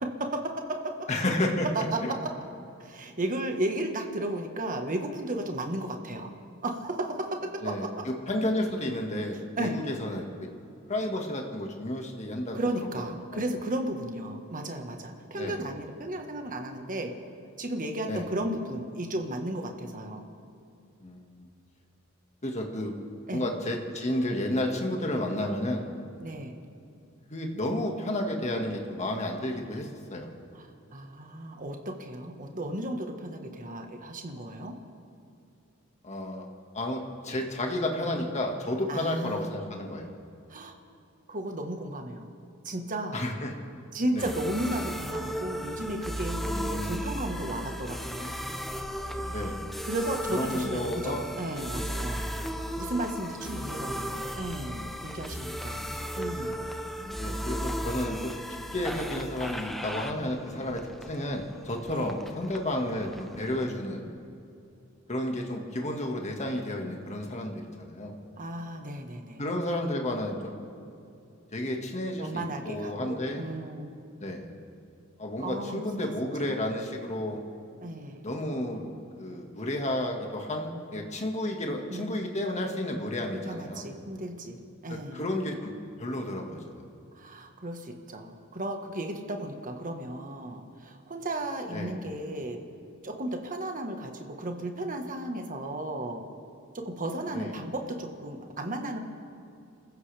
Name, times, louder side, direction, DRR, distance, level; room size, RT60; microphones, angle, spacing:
voice 1, 0.0-1.1 1.7-2.1 2.8-6.3 6.6-8.1 9.6-9.8 12.5-17.1 17.6-20.2 23.3-23.4 26.2-26.5 30.5-34.7 38.9-39.5 40.5-40.7 41.3-42.3 42.6-43.2 43.9-48.4 49.8-52.2 52.8-55.9 56.2-56.6 61.9-62.1 68.4-69.4 72.2-73.9 75.4-76.3 77.8-78.3 81.9-82.1 83.4-85.2 87.1-92.6 93.0-96.2 96.7-99.0, right 1 dB, 40° right, 4 dB, 1.4 m, -34 dB
voice 2, 1.1-1.7 2.0-2.1 7.6-10.5 10.9-12.6 15.3-15.6 18.1-18.3 21.0-21.4 22.4-22.9 23.3-25.8 27.3-30.3 36.0-36.5 36.7-40.1 43.1-43.5 44.1-44.3 46.5-47.0 49.2-49.6 50.3-51.2 57.0-64.0 65.1-68.1 69.4-70.5 71.5-73.4 74.2-74.5 75.2-77.4 78.2-83.8 84.9-85.7 86.0-86.6 91.7-91.9 97.2-97.5, left 1 dB, 35° left, 2 dB, 1.8 m, -32 dB
sound 1, 44.2-63.6, equal, ahead, 0.8 m, -36 dB
27.5 x 15.0 x 3.4 m, 2.6 s
head